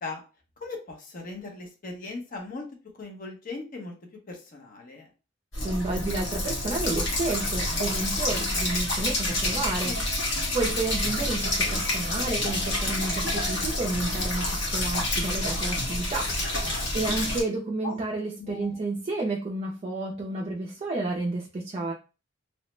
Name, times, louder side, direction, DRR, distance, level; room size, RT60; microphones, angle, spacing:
voice 1, 0.6-2.6 3.0-3.9 4.3-5.1 9.5-10.1 16.4-17.2 17.8-18.0 18.4-18.8, left 3 dB, 45° left, 1 dB, 0.7 m, -39 dB
sound 1, 5.5-17.4, left 1 dB, 60° left, 1.0 m, -28 dB
voice 2, 5.6-10.0 10.5-16.7 16.9-21.9, right 2 dB, 30° right, -1 dB, 0.4 m, -31 dB
3.0 x 2.0 x 3.1 m, 0.33 s
head